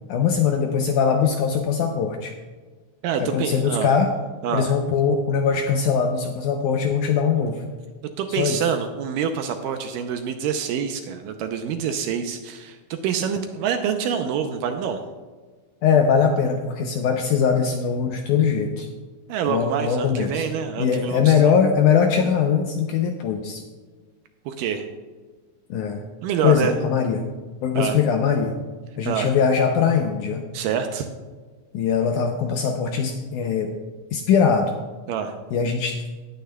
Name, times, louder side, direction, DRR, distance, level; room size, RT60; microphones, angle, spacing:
voice 1, 0.1-2.3 3.2-4.1 4.5-7.6 8.3-8.7 15.8-18.9 19.5-20.5 20.8-23.6 25.7-26.0 26.4-27.2 27.6-28.6 29.0-30.5 31.7-33.7 34.1-34.7 35.5-36.0, left 6 dB, 80° left, 4 dB, 1.8 m, -21 dB
voice 2, 3.0-3.9 4.4-4.7 8.2-12.8 13.0-15.0 19.3-21.6 24.5-24.9 26.2-26.8 27.8-28.0 29.0-29.3 30.5-31.1 35.1-35.3, right 7 dB, 80° right, 6 dB, 2.1 m, -26 dB
18.0 x 8.9 x 2.2 m, 1.4 s
omnidirectional pair, 4.2 m